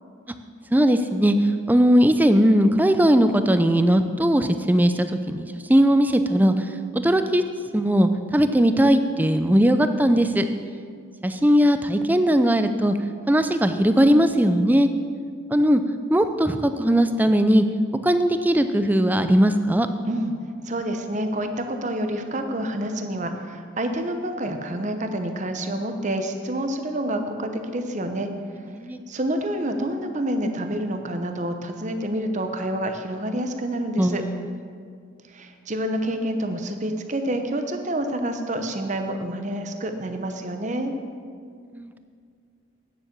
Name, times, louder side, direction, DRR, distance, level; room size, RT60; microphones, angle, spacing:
voice 1, 0.7-6.5 6.9-7.4 7.7-10.5 11.2-13.0 13.3-14.9 15.5-15.8 16.1-17.6 18.0-19.9 28.7-29.0 34.0-34.5 41.7-42.0, equal, 10° right, 9 dB, 0.4 m, -19 dB
voice 2, 20.6-28.3 29.1-34.2 35.3-40.9, right 1 dB, 35° right, 6 dB, 0.8 m, -28 dB
9.4 x 7.4 x 7.3 m, 2.2 s
head